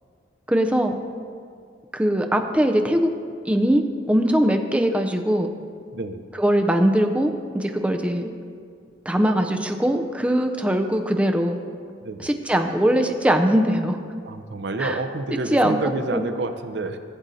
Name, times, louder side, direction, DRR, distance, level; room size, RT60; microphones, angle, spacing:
voice 1, 0.5-0.9 1.9-3.1 3.4-5.5 6.4-8.3 9.1-11.6 12.2-14.0 14.8-15.0 15.5-15.8 16.1-16.2, equal, 5° right, 5 dB, 0.4 m, -21 dB
voice 2, 12.0-12.3 14.3-17.0, right 2 dB, 65° right, 8 dB, 0.6 m, -29 dB
15.0 x 7.6 x 2.7 m, 2.2 s
head